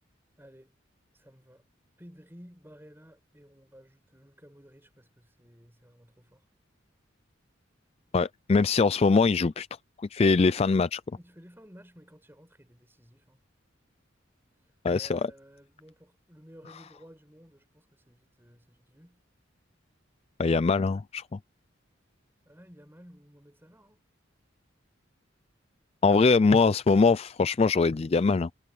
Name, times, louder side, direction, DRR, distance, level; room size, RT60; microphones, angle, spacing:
voice 1, 0.4-0.8 1.1-1.7 2.0-6.5 11.2-13.4 14.9-19.2 22.4-24.0, equal, 10° right, 6.3 m, -54 dB
voice 2, 8.1-9.7 10.0-11.0 14.8-15.2 20.4-21.4 26.0-28.5, left 4 dB, 30° left, 0.3 m, -22 dB
head